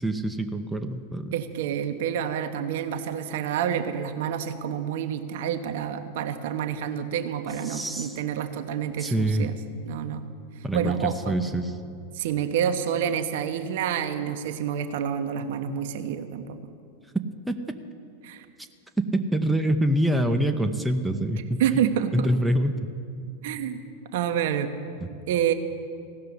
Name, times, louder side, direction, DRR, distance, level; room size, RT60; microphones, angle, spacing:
voice 1, 0.0-1.3 7.7-8.2 9.0-9.5 10.6-11.7 17.5-17.6 19.1-21.8 22.1-22.9, right 1 dB, 5° right, 6 dB, 0.6 m, -25 dB
voice 2, 1.3-9.5 9.9-10.2 10.7-11.4 12.1-16.6 18.2-18.5 21.6-22.3 23.4-23.8 24.1-24.7 25.3-25.5, right 9 dB, 55° right, 9 dB, 0.8 m, -28 dB
16.0 x 6.6 x 9.6 m, 2.4 s
figure-of-eight pair, 90°, 0 cm